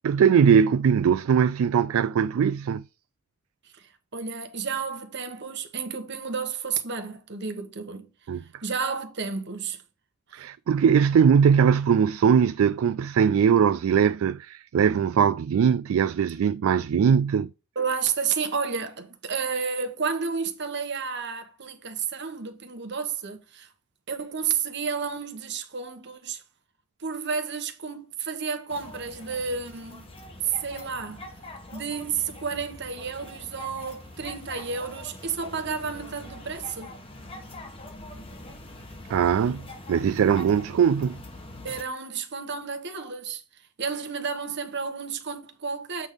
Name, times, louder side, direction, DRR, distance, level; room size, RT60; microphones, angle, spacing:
voice 1, 0.0-2.8 8.3-8.4 10.3-17.5 39.1-39.6 39.9-41.2, right 7 dB, 70° right, 0.3 m, -21 dB
voice 2, 3.7-8.1 8.6-9.8 10.3-10.5 17.7-23.7 24.1-26.4 27.0-30.0 30.4-31.3 31.7-36.9 41.6-43.4 43.8-46.1, right 6 dB, 55° right, 1.2 m, -31 dB
sound 1, 28.7-41.8, left 1 dB, 25° left, 1.2 m, -43 dB
8.1 x 3.5 x 5.1 m
head